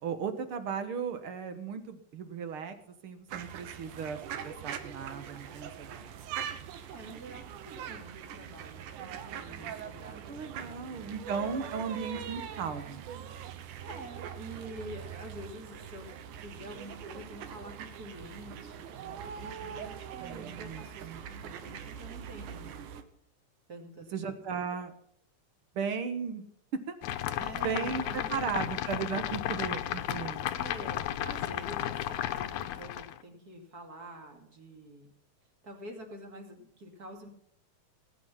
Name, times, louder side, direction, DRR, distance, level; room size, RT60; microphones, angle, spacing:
voice 1, 0.0-6.1 10.3-13.0 20.2-21.2 21.5-21.6 24.1-24.9 25.8-26.5 26.9-27.0 27.4-30.7, right 6 dB, 55° right, 9 dB, 1.8 m, -36 dB
sound 1, 3.3-23.0, right 8 dB, 85° right, 2.6 m, -42 dB
voice 2, 6.9-11.2 13.8-16.1 16.4-23.0 23.7-24.1 27.4-28.5 30.5-35.1 35.6-37.3, right 1 dB, 30° right, 2 dB, 2.8 m, -47 dB
sound 2, 27.0-33.2, left 12 dB, 80° left, 2.1 m, -34 dB
18.5 x 9.8 x 5.8 m, 0.66 s
omnidirectional pair, 3.5 m